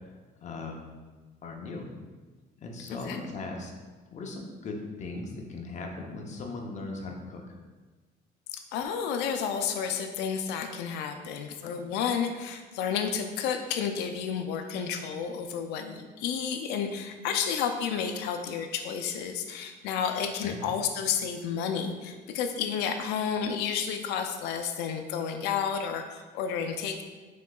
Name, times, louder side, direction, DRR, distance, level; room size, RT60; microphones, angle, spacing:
voice 1, 0.4-0.8 1.4-1.9 2.6-3.7 4.1-7.4 20.4-20.6, left 3 dB, 45° left, 1 dB, 0.7 m, -38 dB
voice 2, 8.5-27.0, left 7 dB, 90° left, 6 dB, 0.4 m, -31 dB
5.2 x 3.7 x 2.3 m, 1.3 s
cardioid pair, 110°, 17 cm